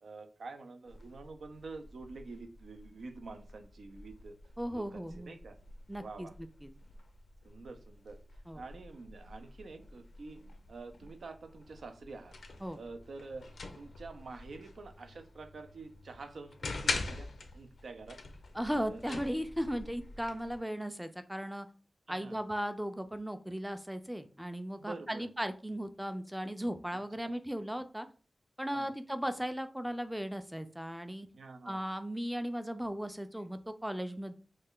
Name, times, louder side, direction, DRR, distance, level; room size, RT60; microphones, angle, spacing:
voice 1, 0.0-4.4 4.7-5.6 6.0-6.3 7.4-8.2 8.5-12.3 12.7-13.5 13.7-18.2 18.9-19.2 22.1-22.4 24.8-25.3 26.9-27.3 28.7-28.9 31.3-31.8, right 3 dB, 80° right, 7 dB, 0.4 m, -47 dB
sound 1, 0.8-20.6, left 3 dB, 80° left, 0.4 m, -45 dB
voice 2, 4.6-5.4 5.9-6.3 6.6-6.7 8.5-8.6 12.6-12.8 18.5-21.7 22.1-28.1 28.6-31.3 31.7-34.3, equal, 5° right, 9 dB, 0.4 m, -37 dB
3.2 x 2.2 x 3.6 m, 0.37 s
wide cardioid pair, 75°, 0 cm